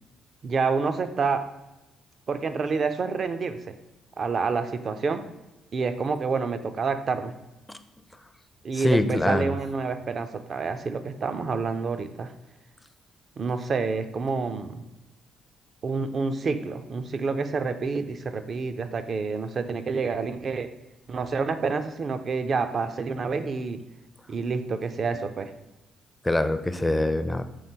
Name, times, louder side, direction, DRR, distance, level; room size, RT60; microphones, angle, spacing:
voice 1, 0.4-1.5 2.3-3.8 4.2-5.3 5.7-7.3 8.6-12.3 13.4-14.8 15.8-20.7 21.1-23.8 24.3-25.5, right 4 dB, 45° right, 10 dB, 0.5 m, -28 dB
voice 2, 8.7-9.5 26.2-27.4, left 1 dB, 10° left, 10 dB, 0.4 m, -24 dB
6.4 x 3.3 x 4.5 m, 1.0 s
cardioid pair, 90°, 0 cm